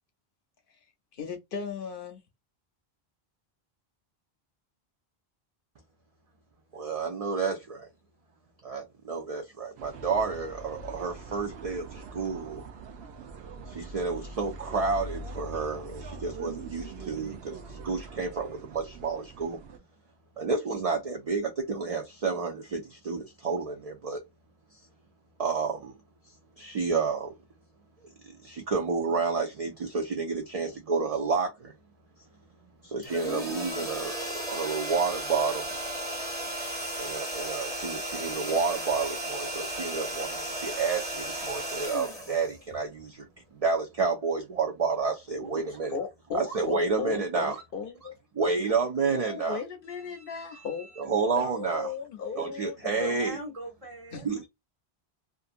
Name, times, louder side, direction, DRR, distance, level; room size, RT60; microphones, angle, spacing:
voice 1, 1.1-2.2 45.9-48.1 49.1-53.1 54.1-54.3, left 5 dB, 60° left, 0.7 m, -36 dB
voice 2, 6.7-7.9 8.6-12.6 13.7-19.6 20.4-24.2 25.4-25.9 26.6-27.3 28.2-31.7 32.8-35.7 37.0-43.3 43.6-46.0 46.3-47.6 48.4-49.6 51.0-51.9 52.3-53.4 54.2-54.4, right 4 dB, 50° right, 0.4 m, -30 dB
sound 1, 9.8-19.8, right 3 dB, 75° right, 0.8 m, -43 dB
sound 2, 33.0-43.0, right 1 dB, 5° left, 1.4 m, -35 dB
voice 3, 45.3-45.8 46.3-46.6 47.5-47.6 48.0-48.1 48.4-48.5 49.9-51.0 52.9-54.5, right 2 dB, 35° right, 1.3 m, -43 dB
2.6 x 2.4 x 2.4 m
omnidirectional pair, 1.1 m